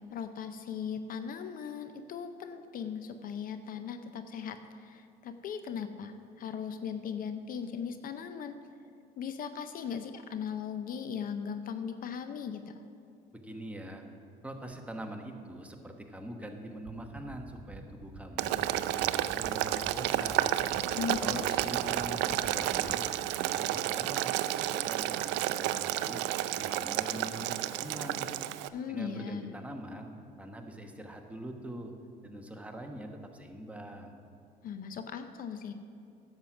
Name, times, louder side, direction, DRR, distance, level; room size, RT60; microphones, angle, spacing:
voice 1, 0.1-8.6 9.2-12.8 20.9-21.6 28.7-29.5 34.6-35.7, left 7 dB, 50° left, 9 dB, 0.6 m, -38 dB
voice 2, 13.3-14.0 14.4-20.5 21.2-23.0 23.4-24.4 24.6-26.2 26.6-28.3 28.9-30.1 30.4-31.9 32.2-34.2, right 1 dB, 5° right, 3 dB, 1.2 m, -43 dB
sound 1, 16.8-22.9, right 5 dB, 35° right, 1.5 m, -47 dB
Boiling, 18.4-28.7, right 13 dB, 75° right, 0.4 m, -31 dB
10.5 x 7.5 x 6.1 m, 2.5 s
supercardioid pair, 95°, 18 cm